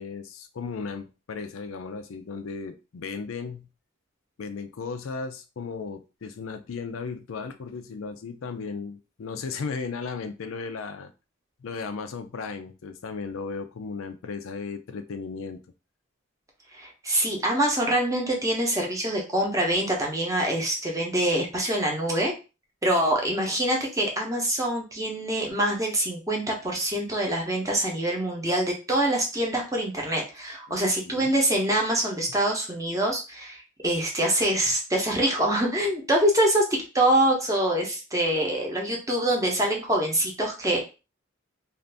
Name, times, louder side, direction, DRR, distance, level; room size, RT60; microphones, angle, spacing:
voice 1, 0.0-3.7 4.4-11.1 11.6-15.6 30.7-31.3, left 4 dB, 90° left, 9 dB, 0.4 m, -35 dB
voice 2, 16.7-22.3 22.8-40.8, right 1 dB, 15° right, 0 dB, 0.8 m, -25 dB
2.6 x 2.5 x 3.3 m, 0.30 s
head